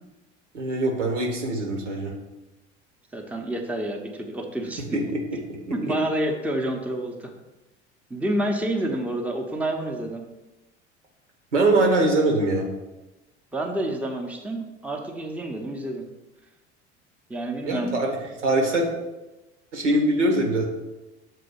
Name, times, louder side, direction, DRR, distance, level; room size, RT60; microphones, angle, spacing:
voice 1, 0.5-2.1 4.9-5.2 5.5-5.6 5.9-6.0 11.5-12.7 17.6-18.2 18.4-18.9 19.7-20.6, right 2 dB, 80° right, 1 dB, 1.4 m, -22 dB
voice 2, 3.1-5.0 5.7-7.3 8.1-10.2 13.5-16.1 17.3-18.0, right 1 dB, 5° right, 2 dB, 0.8 m, -28 dB
6.6 x 3.8 x 5.2 m, 1.1 s
figure-of-eight pair, 70°, 35 cm